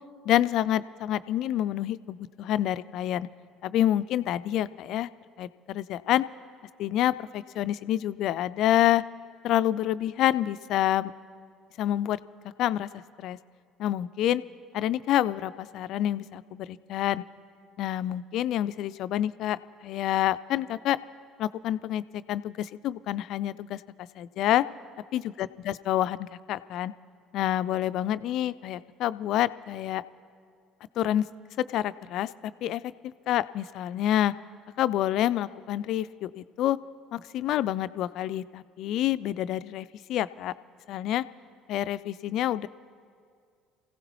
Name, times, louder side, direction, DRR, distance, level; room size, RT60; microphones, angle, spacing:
voice 1, 0.3-3.3 3.6-5.1 5.4-6.2 6.8-9.0 9.4-11.1 11.8-12.2 12.6-12.9 13.2-13.4 13.8-14.4 14.7-17.2 17.8-21.0 21.4-24.7 25.1-26.9 27.3-30.0 31.0-31.3 31.6-32.3 32.6-32.8 33.3-34.3 34.8-36.8 37.1-40.5 40.9-41.2 41.7-42.7, left 12 dB, 55° left, 15 dB, 0.3 m, -27 dB
28.0 x 16.0 x 3.1 m, 2.2 s
figure-of-eight pair, 60°, 0 cm